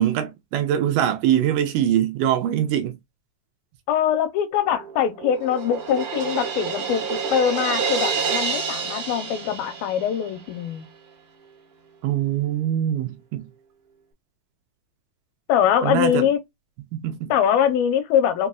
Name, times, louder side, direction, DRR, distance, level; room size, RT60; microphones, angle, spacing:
voice 1, 0.0-3.0 12.0-13.5 15.8-16.3 16.9-17.3, right 11 dB, 75° right, 2.1 m, -23 dB
voice 2, 3.9-10.9 15.5-16.4 17.3-18.5, left 9 dB, 85° left, 2.4 m, -22 dB
Crash cymbal, 4.7-10.4, right 6 dB, 50° right, 2.0 m, -28 dB
5.3 x 2.8 x 2.3 m
omnidirectional pair, 4.1 m